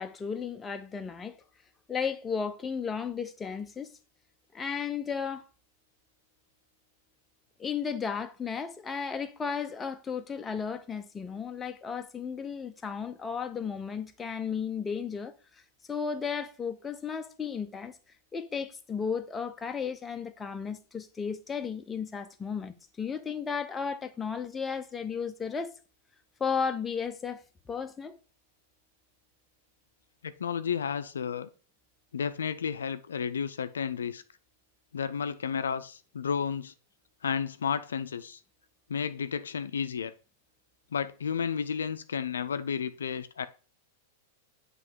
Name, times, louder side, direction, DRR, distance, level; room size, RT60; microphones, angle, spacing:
voice 1, 0.0-1.3 1.9-3.9 4.5-5.5 7.6-15.6 15.9-18.0 18.3-25.8 26.4-28.2, left 6 dB, 15° left, 0.6 m, -34 dB
voice 2, 30.2-31.5 32.1-34.2 34.9-36.7 37.2-38.4 38.9-40.1 40.9-43.5, left 7 dB, 85° left, 0.4 m, -32 dB
7.5 x 3.2 x 4.5 m
hypercardioid pair, 110°, 0 cm